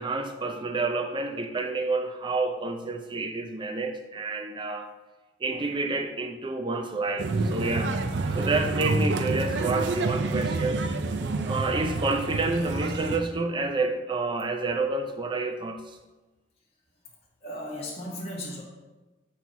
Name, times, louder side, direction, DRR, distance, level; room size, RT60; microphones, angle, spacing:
voice 1, 0.0-4.9 5.4-8.0 8.3-10.8 11.5-15.8, right 3 dB, 30° right, 5 dB, 0.5 m, -29 dB
sound 1, 7.2-13.2, right 3 dB, 80° right, 0.5 m, -28 dB
voice 2, 17.0-18.6, left 1 dB, 35° left, -4 dB, 1.1 m, -37 dB
7.9 x 4.3 x 2.7 m, 1.2 s
head